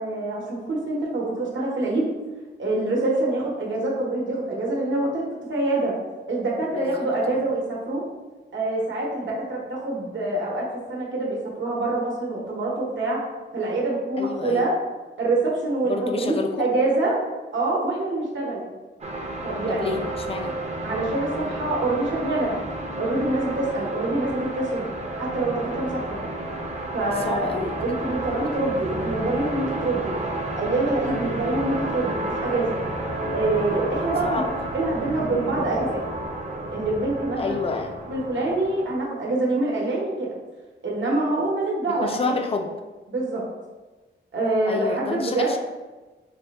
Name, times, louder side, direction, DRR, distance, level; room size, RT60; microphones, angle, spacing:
voice 1, 0.0-2.1 2.6-5.2 5.5-5.9 6.3-8.0 8.5-13.2 13.5-14.7 15.2-17.2 17.5-18.7 19.4-20.0 20.8-22.6 23.0-24.9 25.2-26.2 26.9-27.5 27.8-30.2 30.6-32.8 33.3-34.4 34.7-36.0 36.7-37.6 38.1-40.3 40.8-42.4 43.1-43.4 44.3-45.5, right 2 dB, 75° right, -3 dB, 0.9 m, -25 dB
voice 2, 6.8-7.4 14.2-14.7 15.8-16.7 19.7-20.6 27.2-27.8 34.0-34.5 37.4-38.0 41.9-42.7 44.7-45.6, left 4 dB, 30° left, 5 dB, 0.3 m, -29 dB
sound 1, 19.0-38.9, right 1 dB, 35° right, 0.5 m, -31 dB
3.6 x 2.1 x 3.9 m, 1.2 s
wide cardioid pair, 100°, 20 cm